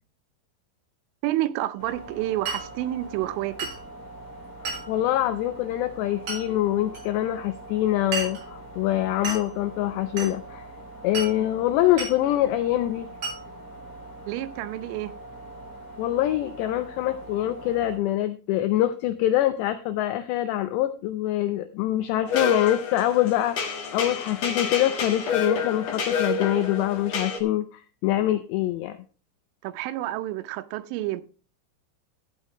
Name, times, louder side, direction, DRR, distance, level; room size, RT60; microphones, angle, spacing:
voice 1, 1.2-3.7 14.3-15.1 29.6-31.2, right 15 dB, 90° right, 3.3 m, -29 dB
sound 1, 1.8-18.0, right 2 dB, 40° left, 2.8 m, -43 dB
Glass, 2.5-2.7 3.6-3.8 4.7-4.9 6.3-6.5 6.9-7.0 8.1-8.5 9.2-9.5 10.2-10.4 11.1-11.4 12.0-12.2 13.2-13.4, right 4 dB, 35° right, 7.1 m, -32 dB
voice 2, 4.9-10.7 11.0-13.1 16.0-29.0, left 13 dB, 80° left, 2.6 m, -25 dB
sound 2, 22.3-27.4, left 4 dB, 65° left, 1.7 m, -29 dB
13.0 x 9.5 x 3.0 m
omnidirectional pair, 5.5 m